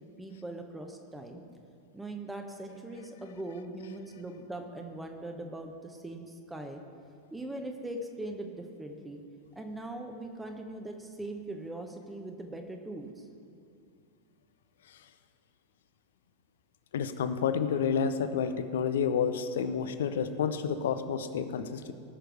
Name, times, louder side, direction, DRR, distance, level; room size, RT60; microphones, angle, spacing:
voice 1, 0.0-1.4 1.9-6.8 7.3-9.2 9.5-13.3, right 2 dB, 10° right, 4 dB, 1.0 m, -41 dB
voice 2, 16.9-21.9, left 7 dB, 60° left, 10 dB, 0.7 m, -30 dB
18.5 x 6.4 x 4.9 m, 2.3 s
figure-of-eight pair, 90°, 0 cm